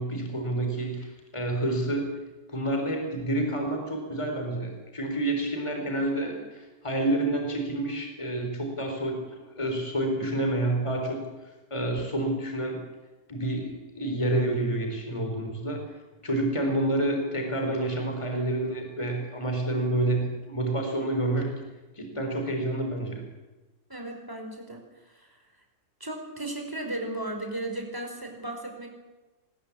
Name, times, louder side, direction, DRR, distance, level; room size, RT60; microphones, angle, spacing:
voice 1, 0.0-2.1 2.5-11.2 11.7-12.8 13.3-15.8 16.2-21.5 22.0-23.2, right 1 dB, 15° left, 3 dB, 4.1 m, -28 dB
voice 2, 23.9-25.4 26.0-28.9, right 1 dB, 10° right, 2 dB, 5.1 m, -36 dB
25.0 x 20.5 x 8.6 m, 1.1 s
omnidirectional pair, 1.9 m